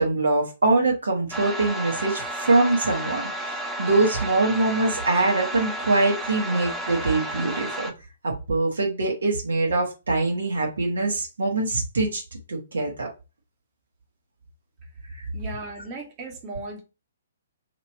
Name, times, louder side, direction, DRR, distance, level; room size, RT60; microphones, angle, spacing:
voice 1, 0.0-7.9 8.2-12.2 12.5-13.1 15.2-15.3, right 2 dB, 65° right, 1.2 m, -23 dB
sound 1, 1.3-7.9, right 1 dB, 5° right, 0.5 m, -32 dB
voice 2, 15.3-16.8, right 2 dB, 30° right, 1.4 m, -36 dB
3.0 x 2.9 x 4.4 m
figure-of-eight pair, 125°, 0 cm